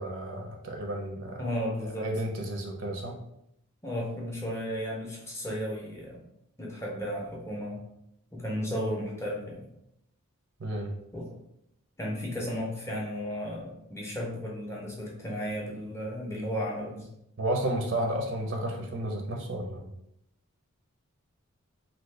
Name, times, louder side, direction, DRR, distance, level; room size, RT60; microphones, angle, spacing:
voice 1, 0.0-1.4 1.8-3.2 10.6-10.9 17.4-19.8, right 1 dB, 55° right, 2 dB, 0.6 m, -32 dB
voice 2, 1.4-2.1 3.8-6.2 6.6-7.8 8.3-9.7 11.1-11.4 12.0-17.1, equal, 10° left, -3 dB, 0.6 m, -34 dB
2.7 x 2.6 x 3.3 m, 0.79 s
head